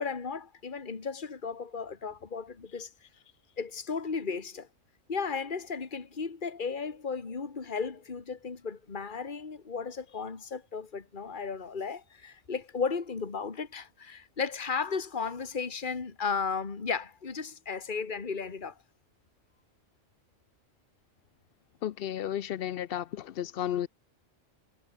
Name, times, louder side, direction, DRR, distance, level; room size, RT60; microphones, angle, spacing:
voice 1, 0.0-2.9 3.6-4.7 5.1-18.7, left 5 dB, 40° left, 1.9 m, -35 dB
voice 2, 21.8-23.9, left 11 dB, 60° left, 0.6 m, -33 dB
omnidirectional pair, 1.3 m